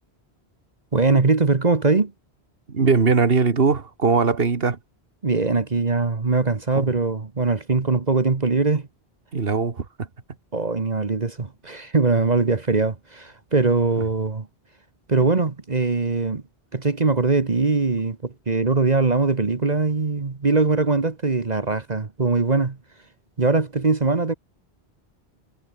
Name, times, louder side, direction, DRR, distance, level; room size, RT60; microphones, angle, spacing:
voice 1, 0.9-2.1 5.2-8.9 10.5-14.5 15.1-16.4 16.7-22.8 23.4-24.3, right 3 dB, 40° right, 1.4 m, -21 dB
voice 2, 2.7-4.8 6.8-6.9 9.3-10.1, right 5 dB, 65° right, 1.9 m, -20 dB
omnidirectional pair, 1.1 m